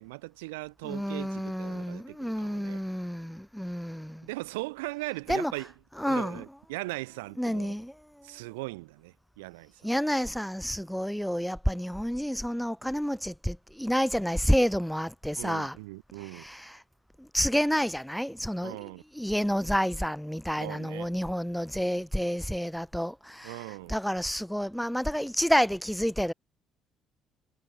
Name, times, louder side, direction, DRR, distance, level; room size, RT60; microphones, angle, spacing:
voice 1, 0.0-2.8 4.2-5.7 6.1-7.7 8.2-9.7 15.3-16.4 18.6-19.0 20.6-21.1 23.4-24.0, right 23 dB, 75° right, 2.0 m, -39 dB
voice 2, 0.8-4.3 5.3-5.5 6.0-6.4 7.4-8.3 9.8-15.8 16.2-16.8 17.2-26.3, equal, ahead, 3.1 m, -29 dB
figure-of-eight pair, 45°, 0 cm